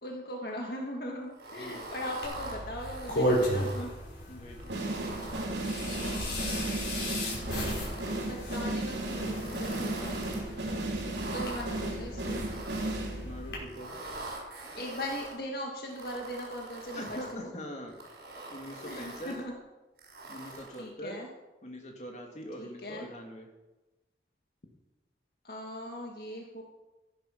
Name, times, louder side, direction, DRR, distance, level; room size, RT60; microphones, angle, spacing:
voice 1, 0.0-3.9 6.3-7.0 8.2-10.2 11.3-12.4 14.7-17.5 18.8-19.6 20.8-21.3 22.6-23.1 25.4-26.6, equal, 60° left, 0 dB, 1.8 m, -39 dB
sound 1, 1.3-3.9 4.5-6.7 7.2-8.3 8.8-10.4 11.0-11.7 12.3-13.1 13.6-15.3 15.9-17.4 17.9-19.4 20.0-20.9, right 2 dB, 60° right, 5.6 m, -44 dB
voice 2, 1.5-1.9 4.3-4.7 6.0-6.4 13.2-13.9 16.9-17.9 18.5-19.4 20.3-21.2 21.6-23.5, equal, 40° left, 1 dB, 2.6 m, -43 dB
sound 2, 2.2-13.6, equal, 85° left, 5.2 m, -35 dB
sound 3, 4.7-13.5, right 2 dB, 80° right, 3.5 m, -35 dB
15.5 x 11.0 x 5.8 m, 1.1 s
head